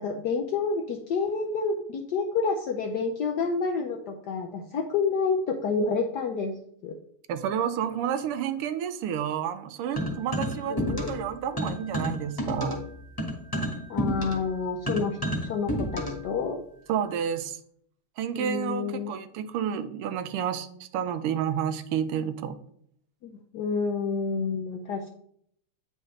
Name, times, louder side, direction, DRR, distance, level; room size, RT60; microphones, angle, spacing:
voice 1, 0.0-6.5 6.8-7.0 10.7-11.1 13.9-16.6 18.3-19.1 23.2-25.1, left 4 dB, 75° left, 3 dB, 0.9 m, -29 dB
voice 2, 7.3-12.8 16.9-17.6 18.2-22.6, right 9 dB, 90° right, 11 dB, 1.6 m, -30 dB
sound 1, 10.0-11.3 11.6-16.3, equal, 15° left, 1.1 m, -30 dB
8.8 x 5.2 x 3.2 m, 0.67 s
omnidirectional pair, 2.4 m